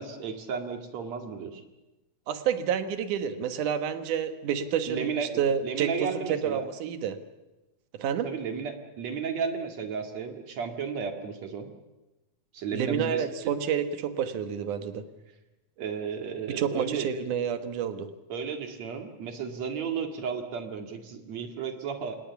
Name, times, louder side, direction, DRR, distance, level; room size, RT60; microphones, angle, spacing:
voice 1, 0.0-1.6 4.9-6.7 8.2-11.7 12.5-13.2 15.8-17.1 18.3-22.2, right 6 dB, 60° right, 5 dB, 3.2 m, -33 dB
voice 2, 2.3-7.2 7.9-8.3 12.7-15.1 16.5-18.1, right 8 dB, 85° right, 9 dB, 2.9 m, -29 dB
27.0 x 19.5 x 7.1 m, 1.0 s
omnidirectional pair, 3.5 m